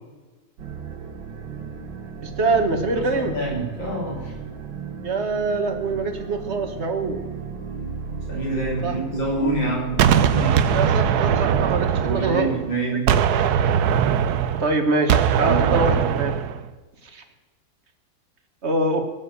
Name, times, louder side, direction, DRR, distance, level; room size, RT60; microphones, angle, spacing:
sound 1, 0.6-11.7, right 5 dB, 85° right, 2.4 m, -35 dB
voice 1, 2.2-3.4 5.0-7.2 8.8-9.0 10.7-12.7 12.9-13.2 14.6-16.3 17.0-17.2 18.6-19.0, right 3 dB, 35° right, 6 dB, 1.7 m, -24 dB
voice 2, 2.9-4.3 8.3-10.6 12.0-13.2 15.4-16.1, right 2 dB, 75° left, -4 dB, 6.7 m, -27 dB
Gunshot gunfire, 10.0-12.7 13.1-16.6, right 8 dB, 65° right, 1.1 m, -20 dB
19.0 x 7.6 x 8.2 m, 1.3 s
omnidirectional pair, 2.1 m